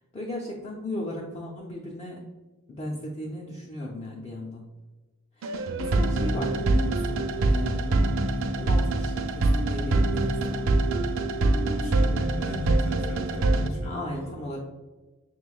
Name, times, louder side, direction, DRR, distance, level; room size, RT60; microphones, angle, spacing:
voice 1, 0.1-2.2 2.7-4.7 5.4-5.5 5.8-8.1 8.6-10.7 13.8-14.6, left 1 dB, 30° left, -3 dB, 0.4 m, -36 dB
sound 1, 5.4-13.7, right 2 dB, 65° right, 0.4 m, -24 dB
voice 2, 11.6-14.4, right 1 dB, 90° left, 0 dB, 1.2 m, -38 dB
5.6 x 3.0 x 2.3 m, 1.2 s
head